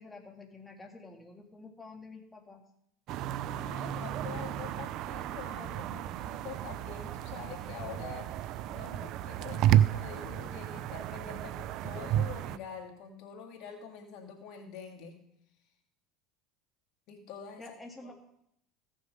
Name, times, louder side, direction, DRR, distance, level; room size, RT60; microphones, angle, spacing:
voice 1, 0.0-2.6 17.6-18.1, left 3 dB, 10° left, 2 dB, 1.8 m, -49 dB
sound 1, 3.1-12.6, right 11 dB, 60° right, 0.5 m, -32 dB
voice 2, 3.5-15.2 17.1-17.6, left 7 dB, 60° left, 3 dB, 2.2 m, -46 dB
15.5 x 6.5 x 5.4 m, 0.75 s
supercardioid pair, 100°, 0 cm